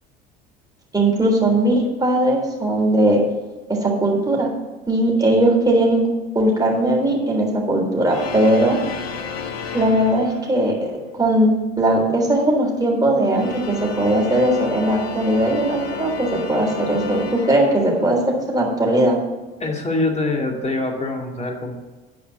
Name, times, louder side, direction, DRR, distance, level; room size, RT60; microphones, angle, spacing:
voice 1, 0.9-3.2 3.7-4.5 4.9-6.0 6.3-8.8 9.7-18.2 18.5-19.2, right 1 dB, 10° right, -2 dB, 3.7 m, -19 dB
sound 1, 8.1-10.8 13.1-18.3, left 5 dB, 85° left, 0.8 m, -32 dB
voice 2, 19.6-21.8, left 2 dB, 20° left, 1 dB, 2.4 m, -24 dB
9.7 x 5.1 x 7.1 m, 1.2 s
hypercardioid pair, 65°, 30 cm